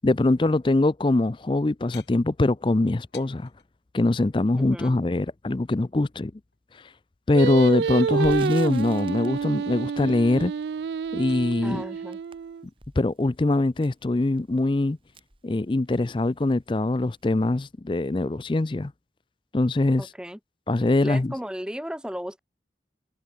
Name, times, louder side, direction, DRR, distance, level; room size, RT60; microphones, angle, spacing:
voice 1, 0.0-3.5 3.9-6.3 7.3-10.5 11.1-11.8 13.0-15.0 15.4-18.9 19.5-20.0 20.7-21.3, left 2 dB, 30° left, 0.4 m, -23 dB
sound 1, 1.9-3.7 5.5-6.6 8.6-9.8 10.1-12.3, left 9 dB, 80° left, 6.4 m, -55 dB
voice 2, 4.6-5.0 11.6-12.2 20.0-20.4 21.0-22.4, equal, 5° right, 2.8 m, -35 dB
Singing, 7.3-12.6, right 6 dB, 75° right, 0.3 m, -28 dB
Crackle, 8.1-16.2 16.5-16.6 16.9-17.7, right 2 dB, 30° right, 6.4 m, -49 dB
head